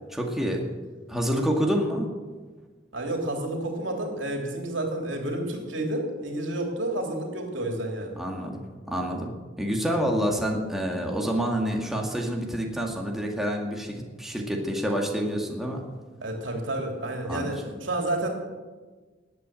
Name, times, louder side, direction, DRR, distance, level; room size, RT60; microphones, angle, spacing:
voice 1, 0.1-0.6 1.1-2.1 8.2-15.8 17.2-17.5, equal, ahead, -1 dB, 2.1 m, -28 dB
voice 2, 2.9-8.2 16.2-18.3, right 1 dB, 80° right, 2 dB, 3.1 m, -30 dB
20.0 x 8.4 x 7.7 m, 1.4 s
head